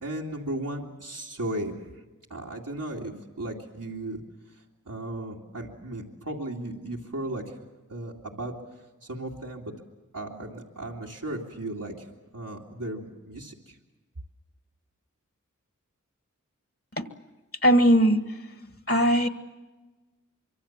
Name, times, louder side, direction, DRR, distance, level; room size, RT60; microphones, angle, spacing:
voice 1, 0.0-1.8 2.3-4.2 4.9-7.6 7.9-8.5 9.0-9.7 10.1-12.1 12.3-13.8, right 1 dB, 90° right, -3 dB, 2.5 m, -35 dB
voice 2, 17.6-18.2 18.9-19.3, equal, 45° left, 9 dB, 1.6 m, -19 dB
24.5 x 24.0 x 7.3 m, 1.2 s
wide cardioid pair, 40°, 31 cm